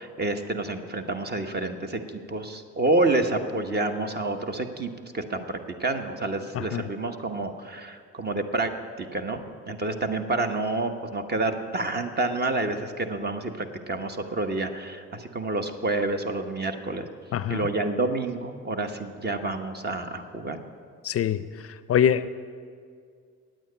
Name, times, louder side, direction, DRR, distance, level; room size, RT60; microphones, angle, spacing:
voice 1, 0.0-2.0 2.3-8.7 9.0-17.1 17.5-20.6, right 2 dB, 35° right, 6 dB, 1.1 m, -28 dB
voice 2, 17.3-17.7 21.0-21.4 21.9-22.3, left 9 dB, 50° left, 14 dB, 0.5 m, -23 dB
9.0 x 9.0 x 9.7 m, 2.2 s
cardioid pair, 90°, 30 cm